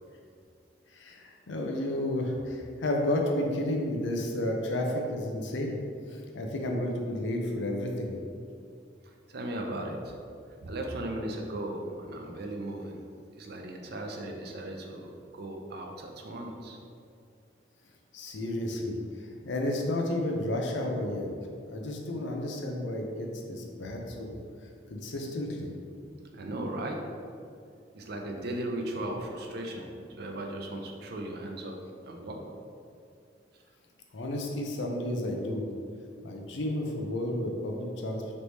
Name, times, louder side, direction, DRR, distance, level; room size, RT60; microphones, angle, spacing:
voice 1, 0.9-5.7 6.1-8.1 18.1-21.3 21.7-24.4 24.9-25.7 34.1-35.7 36.2-38.4, left 1 dB, 75° left, 1 dB, 0.6 m, -32 dB
voice 2, 9.0-10.1 10.6-13.0 13.4-16.8 26.3-27.0 27.9-29.9 30.2-32.4, right 1 dB, 60° right, 2 dB, 0.5 m, -37 dB
3.3 x 3.2 x 4.1 m, 2.3 s
head